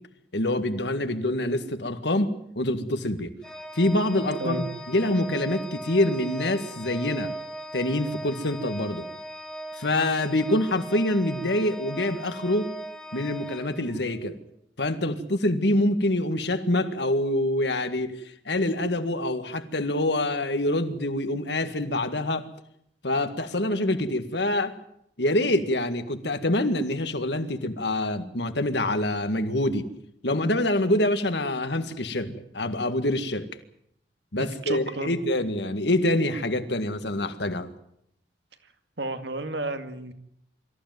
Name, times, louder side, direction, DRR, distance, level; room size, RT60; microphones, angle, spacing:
voice 1, 0.3-2.3 2.6-3.3 3.7-7.3 7.7-9.1 9.8-12.7 13.1-14.4 14.8-22.5 23.0-24.8 25.2-29.9 30.2-33.5 34.3-37.7, left 1 dB, 70° left, 9 dB, 1.9 m, -26 dB
Organ, 3.4-14.3, right 1 dB, 5° left, 2.1 m, -38 dB
voice 2, 34.4-35.2 39.0-40.1, right 2 dB, 70° right, 8 dB, 2.2 m, -32 dB
24.5 x 15.0 x 9.3 m, 0.74 s
head